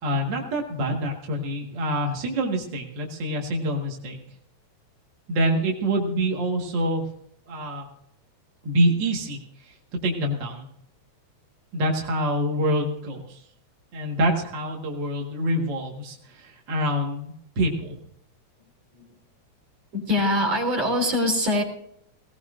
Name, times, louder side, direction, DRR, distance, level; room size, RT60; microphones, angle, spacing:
voice 1, 0.0-4.2 5.3-7.0 7.5-7.9 8.6-9.4 9.6-9.7 10.0-10.7 11.7-13.4 13.9-18.0, right 1 dB, 40° right, 0 dB, 2.1 m, -26 dB
voice 2, 19.9-21.6, left 1 dB, 60° right, 0 dB, 4.4 m, -23 dB
19.0 x 17.5 x 2.6 m, 0.70 s
omnidirectional pair, 3.4 m